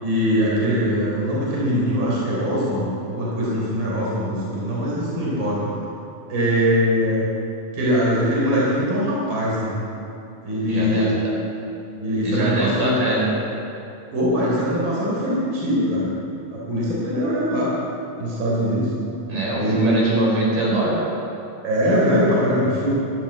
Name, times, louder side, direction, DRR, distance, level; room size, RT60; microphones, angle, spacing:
voice 1, 0.0-5.7 6.3-7.2 7.7-9.7 10.4-11.3 12.0-13.0 14.1-16.1 16.5-17.7 18.2-18.9 19.6-19.8 21.6-22.9, equal, 35° right, -6 dB, 4.3 m, -22 dB
voice 2, 10.7-11.1 12.2-13.3 19.3-21.1, right 2 dB, 60° right, -5 dB, 5.9 m, -22 dB
13.0 x 12.5 x 7.9 m, 2.8 s
omnidirectional pair, 4.2 m